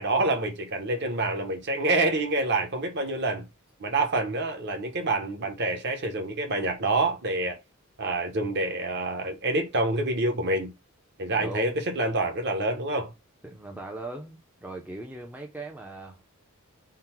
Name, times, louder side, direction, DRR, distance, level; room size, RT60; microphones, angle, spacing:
voice 1, 0.0-3.5 3.8-7.6 8.0-10.7 11.2-13.1, right 2 dB, 50° right, 0.9 m, -27 dB
voice 2, 11.4-11.8 13.4-16.2, right 2 dB, 5° right, 0.4 m, -39 dB
3.8 x 2.1 x 4.3 m
head